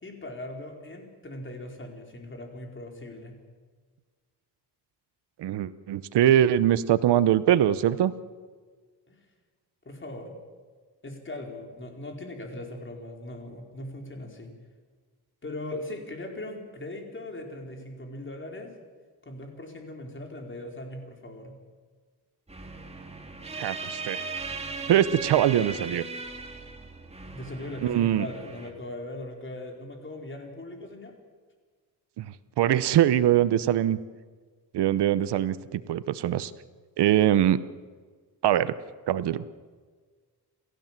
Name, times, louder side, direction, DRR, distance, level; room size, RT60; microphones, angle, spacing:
voice 1, 0.0-3.4 9.1-9.2 9.8-10.3 11.0-14.5 15.4-18.7 19.2-21.6 27.3-31.1, left 1 dB, 30° left, 2 dB, 4.6 m, -39 dB
voice 2, 5.4-8.1 23.6-24.2 24.9-26.0 27.8-28.3 32.2-32.3 32.6-34.0 34.7-36.5 37.0-37.6 38.4-38.7 39.1-39.4, right 11 dB, 80° right, 15 dB, 0.9 m, -22 dB
sound 1, 22.5-28.7, right 4 dB, 15° right, 2.9 m, -38 dB
29.0 x 15.0 x 7.5 m, 1.5 s
cardioid pair, 110°, 40 cm